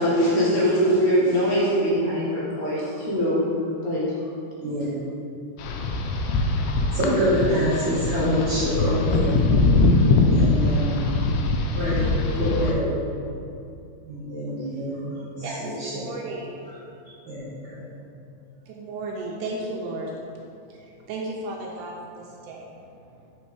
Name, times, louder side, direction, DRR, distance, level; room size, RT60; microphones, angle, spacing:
voice 1, 0.0-3.4 3.8-4.0, equal, 65° left, -7 dB, 2.2 m, -22 dB
voice 2, 4.6-5.0 6.9-9.4 10.3-11.0 11.7-12.1 12.4-13.1 14.1-15.3 15.6-16.1 17.3-17.8, equal, 55° right, -10 dB, 1.5 m, -26 dB
sound 1, 5.6-12.7, left 3 dB, 85° left, 2.1 m, -22 dB
voice 3, 14.5-14.9 15.4-16.6 18.7-20.2 20.7-22.8, right 2 dB, 85° right, -2 dB, 2.1 m, -34 dB
4.9 x 4.1 x 4.7 m, 2.6 s
omnidirectional pair, 3.6 m